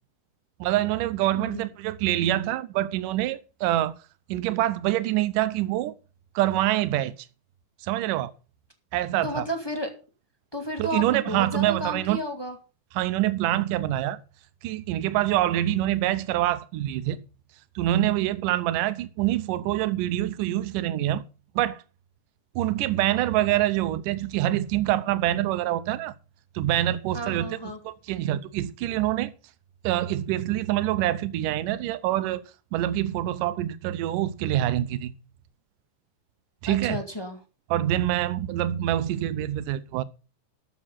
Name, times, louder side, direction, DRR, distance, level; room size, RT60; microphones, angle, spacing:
voice 1, 0.6-4.0 4.3-5.9 6.4-7.1 7.8-8.3 8.9-9.5 10.8-12.2 13.0-14.2 14.6-17.2 17.8-21.2 21.6-21.8 22.6-26.1 26.6-27.6 27.8-29.3 29.8-32.4 32.7-35.1 36.6-37.0 37.7-40.0, right 14 dB, 80° right, 2.4 m, -25 dB
voice 2, 1.3-1.6 9.2-9.9 10.5-12.5 27.1-27.8 36.7-37.4, equal, 10° left, 1.2 m, -32 dB
12.5 x 7.4 x 5.8 m
omnidirectional pair, 3.8 m